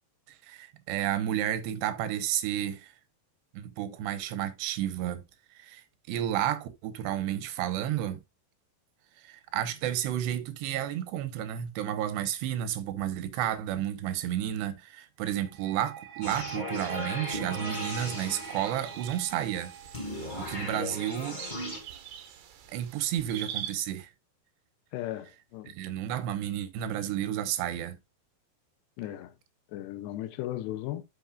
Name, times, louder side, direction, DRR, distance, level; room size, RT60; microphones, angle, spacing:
voice 1, 0.4-2.9 3.5-5.2 5.6-8.2 9.2-19.7 20.1-21.4 22.7-24.1 25.7-28.0, right 11 dB, 90° right, 3.1 m, -31 dB
sound 1, 15.3-20.4, right 9 dB, 55° right, 3.0 m, -43 dB
sound 2, 16.2-19.2 19.9-21.8, left 1 dB, 15° left, 1.5 m, -37 dB
sound 3, 18.3-23.7, right 10 dB, 70° right, 3.4 m, -44 dB
voice 2, 24.9-25.7 29.0-29.3 29.7-31.0, left 14 dB, 85° left, 2.9 m, -36 dB
11.5 x 6.2 x 2.4 m
omnidirectional pair, 4.9 m